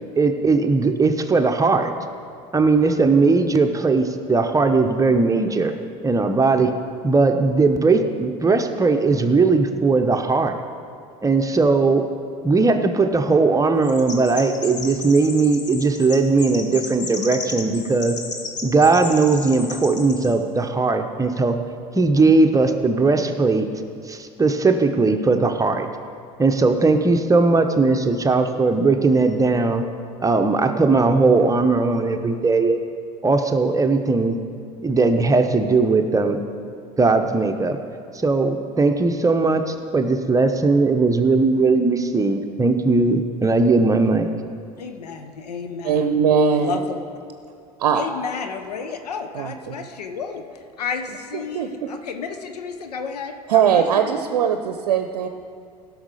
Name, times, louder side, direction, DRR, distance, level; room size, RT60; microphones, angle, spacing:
voice 1, 0.2-1.9 2.5-5.7 6.0-6.7 7.0-10.6 11.2-12.0 12.4-18.2 18.6-21.6 21.9-23.7 24.1-25.9 26.4-29.8 30.2-32.8 33.2-34.4 34.8-36.4 37.0-37.8 38.1-44.3, right 3 dB, 15° right, 6 dB, 0.9 m, -18 dB
Chirp tweet, 13.8-20.4, left 4 dB, 40° left, 1.4 m, -34 dB
voice 2, 44.8-46.1 46.5-47.0 47.9-54.1, left 5 dB, 80° left, 6 dB, 0.8 m, -32 dB
voice 3, 45.8-46.8 47.8-48.0 49.3-49.7 51.3-51.9 53.5-55.3, right 7 dB, 75° right, 7 dB, 0.7 m, -20 dB
16.0 x 6.5 x 5.0 m, 2.4 s
hypercardioid pair, 70°, 20 cm